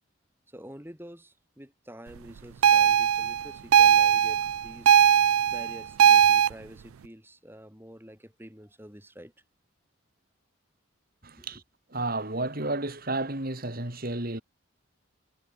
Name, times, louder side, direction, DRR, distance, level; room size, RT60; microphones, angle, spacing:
voice 1, 0.5-5.0 5.5-9.3 11.4-11.6, equal, 10° right, 5.5 m, -47 dB
sound 1, 2.6-6.5, right 9 dB, 80° right, 0.4 m, -19 dB
voice 2, 11.2-11.6 11.9-14.4, right 2 dB, 45° right, 2.7 m, -31 dB
head